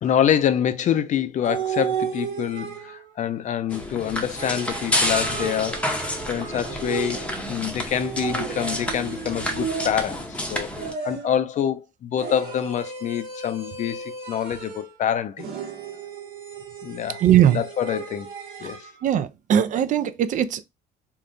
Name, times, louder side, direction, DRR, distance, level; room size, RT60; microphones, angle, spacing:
voice 1, 0.0-5.8 6.3-10.7 11.0-15.5 16.8-17.2 17.5-18.3 18.6-18.9, left 9 dB, 45° left, 0.4 m, -26 dB
sound 1, 1.4-3.2 4.4-7.4 7.9-10.3 10.8-11.5 12.2-15.0 15.4-18.9, right 7 dB, 70° right, 1.1 m, -34 dB
sound 2, 3.7-10.9, left 1 dB, 5° left, 0.7 m, -29 dB
voice 2, 17.2-17.6 19.0-20.6, right 10 dB, 50° right, 0.4 m, -19 dB
3.6 x 2.2 x 2.5 m
cardioid pair, 110°, 17 cm